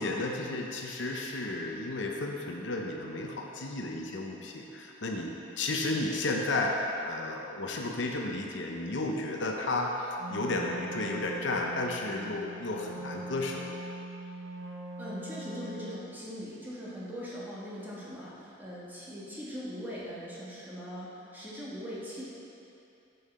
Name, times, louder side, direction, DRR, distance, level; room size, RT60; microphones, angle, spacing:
voice 1, 0.0-13.6, left 2 dB, 65° left, 1 dB, 0.7 m, -33 dB
Wind instrument woodwind instrument, 10.2-16.1, right 1 dB, 75° right, 0.7 m, -41 dB
voice 2, 15.0-22.2, equal, 10° right, -7 dB, 1.4 m, -41 dB
8.6 x 5.6 x 4.3 m, 2.7 s
head